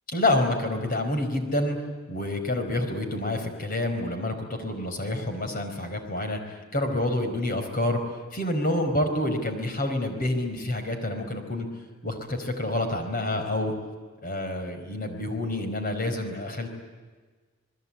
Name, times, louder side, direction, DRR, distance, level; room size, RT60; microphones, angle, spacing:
voice 1, 0.1-1.8 2.1-6.4 6.7-8.0 8.3-11.7 12.0-13.7 14.2-16.7, left 1 dB, 45° left, 6 dB, 4.7 m, -28 dB
28.5 x 20.5 x 8.7 m, 1.4 s
head